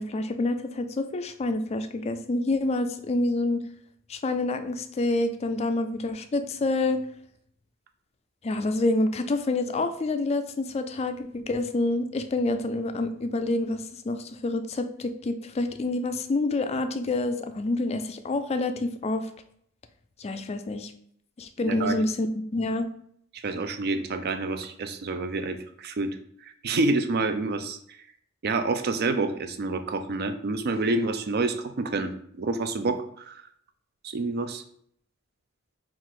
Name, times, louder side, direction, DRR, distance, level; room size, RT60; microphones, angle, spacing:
voice 1, 0.0-3.6 4.1-7.0 8.4-19.3 20.2-20.9 21.4-22.9, left 2 dB, 30° left, 9 dB, 0.3 m, -27 dB
voice 2, 21.6-22.0 23.3-28.0 28.4-32.1 32.4-33.5 34.0-34.6, right 3 dB, 50° right, 9 dB, 0.4 m, -28 dB
4.6 x 2.5 x 3.8 m, 0.67 s
head